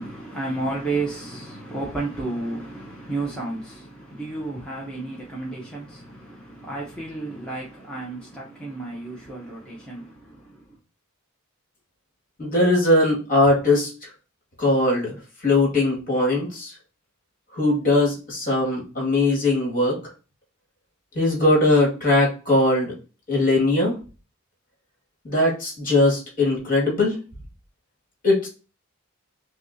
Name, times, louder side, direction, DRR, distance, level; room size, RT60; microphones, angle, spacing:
voice 1, 0.0-10.6, right 2 dB, 5° left, 0.9 m, -32 dB
voice 2, 12.4-13.9 14.6-15.1 15.4-16.7 17.5-20.0 21.2-22.9 23.3-23.9 25.2-27.2 28.2-28.5, left 2 dB, 40° left, 2.0 m, -20 dB
5.9 x 2.4 x 2.7 m
head